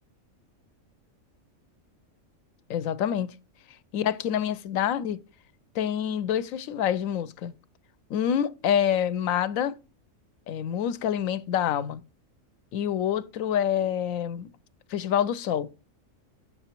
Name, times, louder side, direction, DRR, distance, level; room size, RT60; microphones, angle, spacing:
voice 1, 2.7-3.3 3.9-5.2 5.8-7.5 8.1-9.7 10.5-12.0 12.7-14.5 14.9-15.7, left 9 dB, 80° left, 1.0 m, -27 dB
7.7 x 6.8 x 2.9 m
omnidirectional pair, 1.4 m